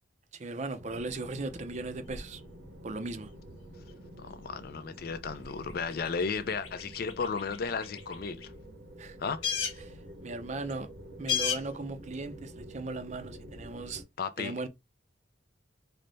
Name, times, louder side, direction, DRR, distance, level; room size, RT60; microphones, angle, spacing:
voice 1, 0.3-2.4 2.8-3.3 9.0-9.2 9.8-10.9 11.2-14.0 14.4-14.7, right 3 dB, 35° right, 0.5 m, -38 dB
sound 1, 0.8-14.0, equal, 60° right, 0.8 m, -48 dB
sound 2, 1.6-9.0 9.2-12.3, left 8 dB, 90° left, 1.1 m, -39 dB
voice 2, 4.2-8.5 9.2-9.4 14.2-14.5, left 5 dB, 50° left, 0.4 m, -34 dB
3.3 x 2.1 x 3.9 m
head